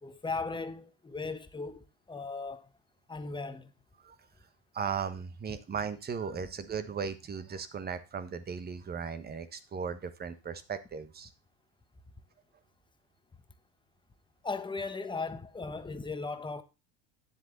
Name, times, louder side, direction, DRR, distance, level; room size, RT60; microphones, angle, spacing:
voice 1, 0.0-2.7 3.1-3.7 5.5-5.6 6.4-6.5 14.4-16.6, left 4 dB, 15° left, 1.2 m, -37 dB
voice 2, 4.7-11.3, right 6 dB, 30° right, 1.4 m, -37 dB
10.0 x 7.5 x 3.9 m
supercardioid pair, 110°, 32 cm